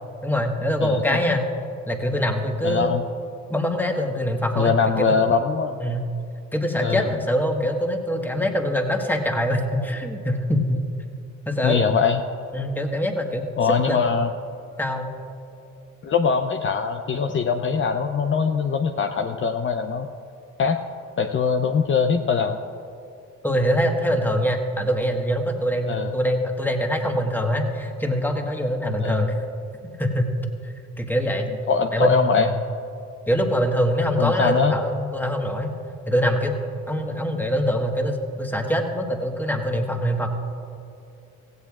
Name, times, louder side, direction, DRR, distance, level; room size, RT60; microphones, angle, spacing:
voice 1, 0.2-1.5 1.9-2.9 3.5-4.7 5.0-5.1 5.8-6.1 6.5-10.8 11.5-11.8 12.5-13.5 13.9-14.0 14.8-15.1 23.4-29.4 30.0-30.3 31.0-31.5 31.9-32.2 32.4-32.5 33.3-35.7 36.1-36.6 36.9-40.3, equal, 5° left, 3 dB, 1.4 m, -23 dB
voice 2, 0.8-1.2 2.6-3.0 4.6-5.8 6.8-7.1 11.6-12.2 13.6-14.3 16.0-20.1 20.6-20.8 21.2-22.6 25.9-26.1 29.0-29.3 31.7-32.5 34.2-34.8, left 5 dB, 40° left, 6 dB, 0.6 m, -22 dB
16.5 x 16.0 x 2.4 m, 2.7 s
cardioid pair, 90°, 30 cm